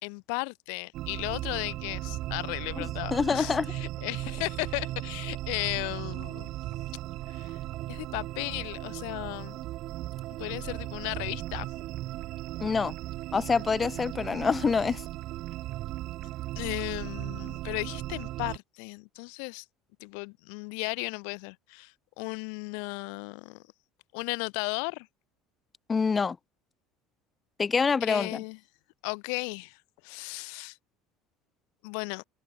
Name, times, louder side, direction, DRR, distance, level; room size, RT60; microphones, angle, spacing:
voice 1, 0.0-6.5 7.3-7.6 7.9-9.6 10.4-11.7 16.6-19.6 20.0-21.9 22.2-23.6 24.1-25.1 28.0-28.6 29.0-29.8 30.0-30.8 31.8-32.2, left 40 dB or more, 80° left, 1.9 m, -35 dB
sound 1, 0.9-18.6, right 16 dB, 50° right, 0.9 m, -37 dB
voice 2, 2.8-3.7 12.6-12.9 13.3-15.0 25.9-26.4 27.6-28.4, left 5 dB, 20° left, 2.0 m, -26 dB
cardioid pair, 160°, 0 cm